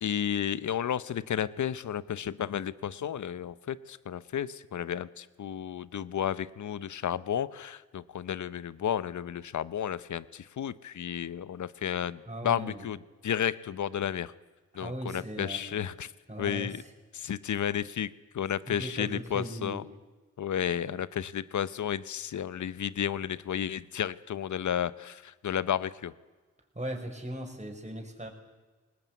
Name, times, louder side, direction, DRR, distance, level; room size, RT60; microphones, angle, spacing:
voice 1, 0.0-13.0 13.2-14.3 14.7-16.1 16.4-16.8 17.1-19.8 20.4-26.1, left 9 dB, 70° left, 18 dB, 0.9 m, -32 dB
voice 2, 12.3-12.9 14.7-15.9 16.3-16.8 17.2-17.3 18.7-19.8 26.7-28.3, right 1 dB, 25° right, 2 dB, 6.2 m, -38 dB
20.0 x 19.0 x 9.5 m, 1.3 s
cardioid pair, 45°, 31 cm